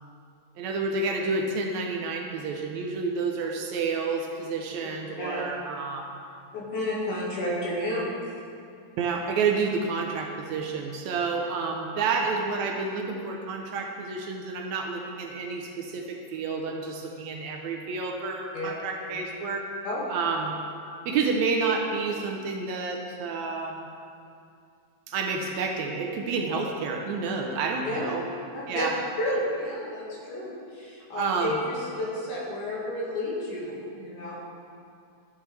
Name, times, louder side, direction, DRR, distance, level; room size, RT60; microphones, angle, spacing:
voice 1, 0.6-6.2 9.0-19.7 20.1-20.5 21.1-23.9 25.1-28.2 28.7-28.9 31.2-31.6, right 4 dB, 75° right, 2 dB, 2.0 m, -29 dB
voice 2, 6.5-8.0 18.5-18.7 19.8-20.0 27.8-28.1 28.5-28.8 29.2-34.4, left 1 dB, 80° left, -5 dB, 3.4 m, -31 dB
11.5 x 9.2 x 3.4 m, 2.4 s
omnidirectional pair, 3.5 m